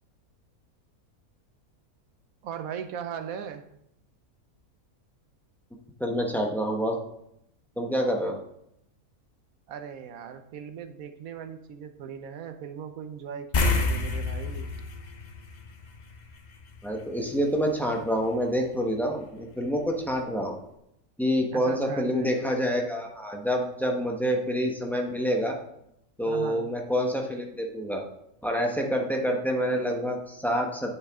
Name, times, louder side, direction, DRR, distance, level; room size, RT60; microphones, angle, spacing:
voice 1, 2.4-3.6 9.7-14.7 21.5-22.7 26.3-26.7, right 8 dB, 70° right, 8 dB, 1.1 m, -38 dB
voice 2, 6.0-7.0 7.8-8.4 16.8-20.6 21.2-25.6 26.2-28.0 28.4-30.9, equal, ahead, 1 dB, 0.8 m, -27 dB
sound 1, 13.5-16.3 16.6-16.8 19.7-19.8 20.1-20.2, left 3 dB, 45° left, 0.5 m, -28 dB
8.8 x 6.5 x 3.6 m, 0.78 s
omnidirectional pair, 1.6 m